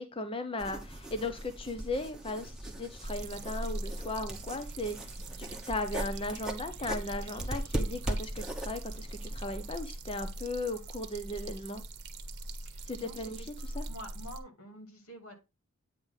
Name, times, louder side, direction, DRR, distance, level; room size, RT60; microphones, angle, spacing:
voice 1, 0.0-11.8 12.9-13.4 13.8-13.9, left 2 dB, 25° left, 7 dB, 0.6 m, -37 dB
sound 1, 0.6-9.8, right 1 dB, 5° right, 1.0 m, -39 dB
sound 2, 3.0-14.4, right 1 dB, 50° right, 1.0 m, -42 dB
voice 2, 5.2-5.5 12.6-13.5 13.9-15.3, equal, 75° left, 5 dB, 2.3 m, -48 dB
8.9 x 3.2 x 5.6 m, 0.25 s
head